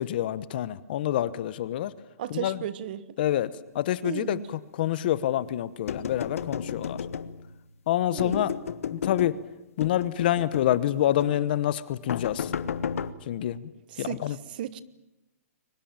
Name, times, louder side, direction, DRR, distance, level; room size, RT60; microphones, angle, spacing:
voice 1, 0.0-1.9 2.3-2.6 3.2-7.0 7.9-8.5 8.9-9.3 9.8-12.5 13.3-13.6 14.0-14.4, left 12 dB, 40° left, 17 dB, 1.0 m, -27 dB
voice 2, 2.2-3.0 4.0-4.5 8.1-8.6 13.9-14.8, right 11 dB, 35° right, 17 dB, 1.1 m, -35 dB
sound 1, 5.9-7.6 8.2-9.4 9.8-10.8 11.2-11.4 12.1-13.1, left 7 dB, 65° left, 1.3 m, -33 dB
23.5 x 21.0 x 8.9 m, 0.94 s
hypercardioid pair, 165°, 8 cm